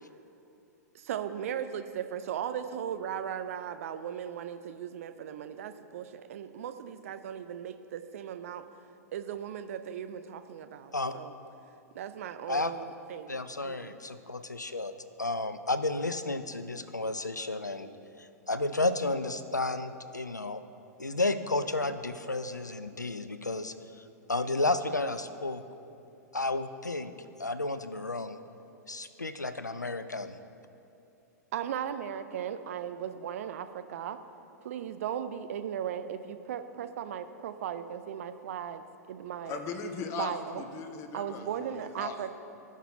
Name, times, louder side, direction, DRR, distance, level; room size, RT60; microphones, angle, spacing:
voice 1, 0.9-8.6 9.1-11.3 11.9-13.9 31.5-34.2 34.6-39.6 40.1-40.6 41.1-42.3, right 9 dB, 55° right, 10 dB, 0.5 m, -37 dB
voice 2, 13.3-14.9 15.2-17.9 18.2-20.6 21.0-23.7 24.3-25.6 26.3-27.1 27.4-28.4 28.9-30.3, left 2 dB, 90° left, 11 dB, 0.5 m, -32 dB
voice 3, 39.4-42.2, left 5 dB, 30° left, 6 dB, 0.9 m, -38 dB
18.0 x 6.0 x 2.8 m, 2.7 s
figure-of-eight pair, 105°, 9 cm